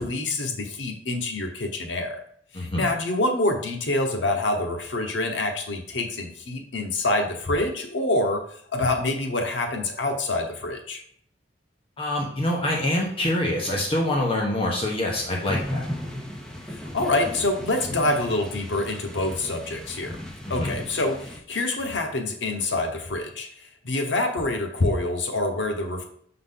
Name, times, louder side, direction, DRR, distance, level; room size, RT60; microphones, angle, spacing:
voice 1, 0.0-2.2 2.5-8.4 8.7-11.0 16.7-20.2 20.5-23.5 23.8-26.0, left 2 dB, 80° left, 3 dB, 1.0 m, -26 dB
voice 2, 2.5-2.9 12.0-15.8 20.6-20.7, left 1 dB, 30° left, -1 dB, 1.0 m, -25 dB
sound 1, 15.1-21.4, left 1 dB, 5° left, 0.9 m, -36 dB
6.5 x 3.9 x 3.9 m, 0.63 s
head